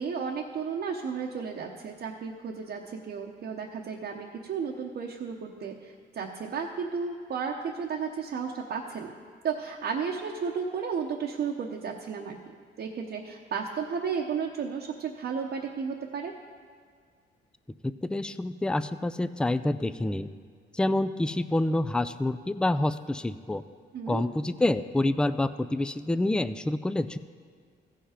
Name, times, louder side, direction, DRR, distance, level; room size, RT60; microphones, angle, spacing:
voice 1, 0.0-9.1 9.4-16.3 23.9-24.2, right 6 dB, 55° right, 0 dB, 0.9 m, -33 dB
voice 2, 17.8-20.3 20.7-23.6 24.1-27.2, left 1 dB, 5° left, 13 dB, 0.3 m, -27 dB
15.0 x 5.6 x 5.0 m, 2.1 s
cardioid pair, 90°, 20 cm